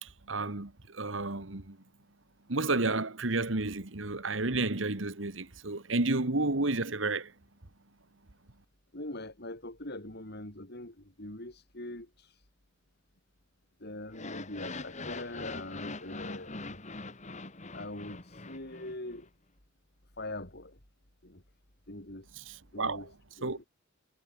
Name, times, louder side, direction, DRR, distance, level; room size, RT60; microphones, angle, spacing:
voice 1, 0.0-1.8 2.5-7.3 22.4-23.0 23.4-23.6, right 2 dB, 70° right, 1.9 m, -31 dB
voice 2, 8.9-12.4 13.8-16.8 17.7-19.3 20.2-20.8 21.2-21.4 21.9-22.3 22.7-23.6, left 1 dB, 55° left, 5.3 m, -43 dB
sound 1, 14.1-19.2, left 3 dB, 35° left, 2.5 m, -42 dB
head